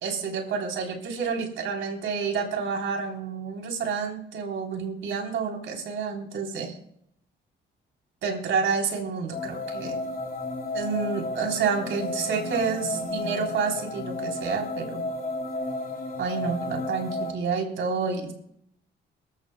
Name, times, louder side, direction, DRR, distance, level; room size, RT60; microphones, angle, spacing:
voice 1, 0.0-6.8 8.2-10.0 10.7-15.1 16.2-18.3, right 5 dB, 75° right, 1 dB, 3.5 m, -29 dB
sound 1, 9.3-17.3, left 2 dB, 50° left, 3.3 m, -32 dB
23.0 x 13.5 x 2.2 m, 0.72 s
cardioid pair, 90°, 20 cm